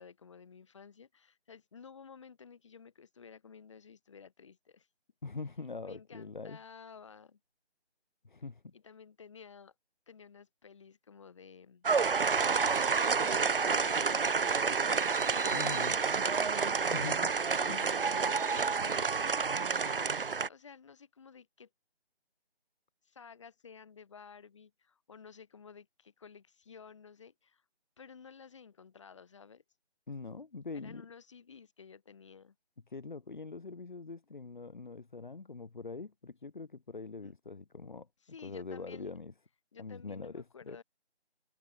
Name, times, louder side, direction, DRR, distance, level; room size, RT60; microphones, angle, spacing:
voice 1, 0.0-4.9 5.8-7.4 8.7-9.7 10.1-11.9 13.2-15.8 17.6-19.4 19.7-20.0 20.2-21.7 23.0-27.6 28.0-29.6 30.7-32.5 37.2-37.3 38.2-39.2 39.7-40.8, left 6 dB, 30° left, 4.7 m, -53 dB
voice 2, 5.2-6.6 8.2-8.7 15.5-16.0 16.9-17.3 17.7-17.9 30.1-31.0 32.9-38.1 38.4-39.3 39.8-40.8, left 4 dB, 45° left, 2.8 m, -43 dB
sound 1, 11.8-20.5, right 5 dB, 55° right, 0.5 m, -29 dB
figure-of-eight pair, 165°, 33 cm